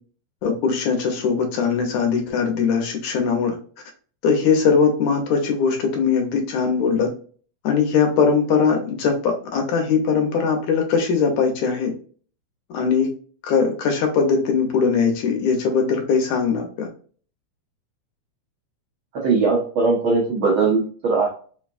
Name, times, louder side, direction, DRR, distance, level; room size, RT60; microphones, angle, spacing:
voice 1, 0.4-3.6 4.2-7.1 7.6-11.9 12.7-13.1 13.4-16.9, left 5 dB, 75° left, 3 dB, 2.1 m, -20 dB
voice 2, 19.1-21.3, right 4 dB, 80° right, -3 dB, 1.1 m, -20 dB
4.8 x 2.2 x 2.4 m, 0.42 s
omnidirectional pair, 3.4 m